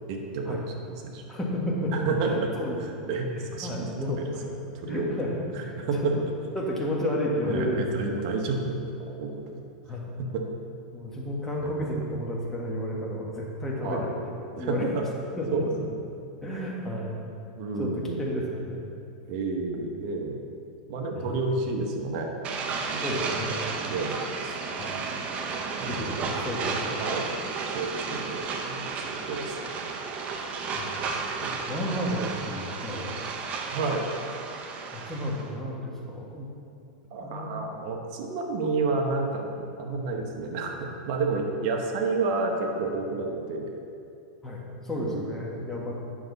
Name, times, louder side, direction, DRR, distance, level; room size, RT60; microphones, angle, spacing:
voice 1, 0.1-1.3 1.9-2.5 3.1-3.9 4.2-4.3 4.8-5.2 5.5-6.1 7.4-9.6 10.2-10.4 11.6-12.0 13.8-14.0 14.6-15.0 15.5-16.0 17.6-18.3 19.3-20.4 20.9-23.3 23.8-24.6 25.7-26.5 27.0-27.2 27.6-28.9 29.2-29.6 31.4-31.6 33.7-34.1 37.1-43.8 45.0-45.3 45.8-45.9, right 3 dB, 50° right, 2 dB, 1.1 m, -30 dB
voice 2, 1.3-2.0 2.2-3.1 3.3-4.5 4.9-5.3 5.6-5.8 6.2-6.3 6.5-7.8 9.9-10.1 10.9-14.9 15.4-15.6 16.4-17.2 17.8-18.9 21.1-21.3 23.0-23.7 24.7-24.9 25.9-27.0 30.7-31.0 31.7-33.1 34.9-36.5 37.2-37.9 44.4-45.9, left 1 dB, 10° left, -4 dB, 1.6 m, -32 dB
sound 1, 22.4-35.5, right 4 dB, 30° right, 0.7 m, -33 dB
8.7 x 6.7 x 4.1 m, 2.6 s
supercardioid pair, 140°, 4 cm